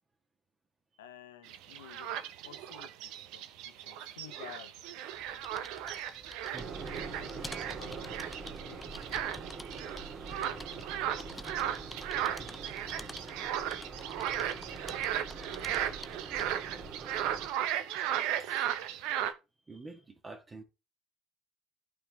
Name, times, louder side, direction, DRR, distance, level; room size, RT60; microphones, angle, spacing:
voice 1, 1.0-4.8 7.0-9.3, left 10 dB, 75° left, 1.1 m, -53 dB
sound 1, 1.5-19.3, right 11 dB, 60° right, 0.8 m, -36 dB
sound 2, 5.1-16.7, left 1 dB, 10° left, 0.7 m, -50 dB
sound 3, 6.5-17.5, right 4 dB, 40° right, 2.2 m, -44 dB
voice 2, 17.9-18.8 19.7-20.6, right 3 dB, 25° right, 1.6 m, -50 dB
12.0 x 4.7 x 3.6 m
figure-of-eight pair, 60°, 0 cm